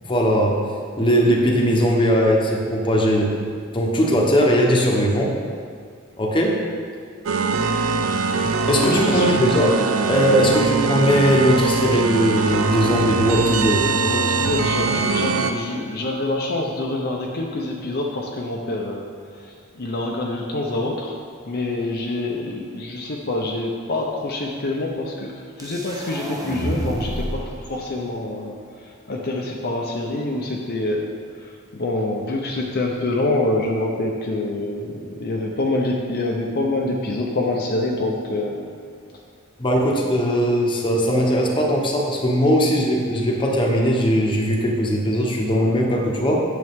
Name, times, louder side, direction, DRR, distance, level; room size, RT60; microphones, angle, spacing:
voice 1, 0.0-0.6 1.0-3.3 3.7-5.3 6.2-6.6 8.7-9.8 10.1-13.9 39.6-46.4, equal, 25° left, -1 dB, 1.0 m, -19 dB
sound 1, 7.3-15.5, right 4 dB, 90° right, 0.5 m, -22 dB
voice 2, 8.8-9.4 13.9-21.2 21.5-38.7, left 2 dB, 50° left, -1 dB, 0.7 m, -26 dB
sound 2, 25.6-27.6, right 1 dB, 15° right, 0.7 m, -29 dB
9.2 x 6.8 x 3.6 m, 2.2 s
head